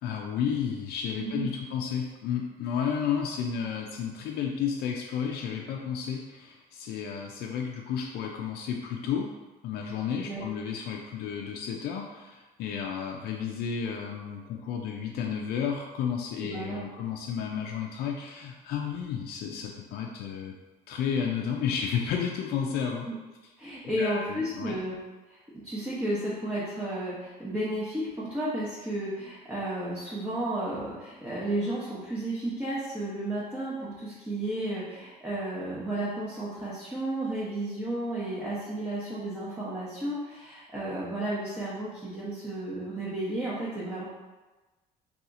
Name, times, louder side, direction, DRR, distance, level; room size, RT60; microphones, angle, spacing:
voice 1, 0.0-9.3 9.6-20.5 20.9-23.1 23.8-24.8, left 7 dB, 70° left, 0 dB, 0.4 m, -32 dB
voice 2, 16.4-16.8 23.0-23.1 23.6-25.0 25.3-25.4 25.6-44.0, right 1 dB, 10° right, -8 dB, 0.7 m, -33 dB
2.8 x 2.4 x 3.7 m, 1.2 s
cardioid pair, 110°, 17 cm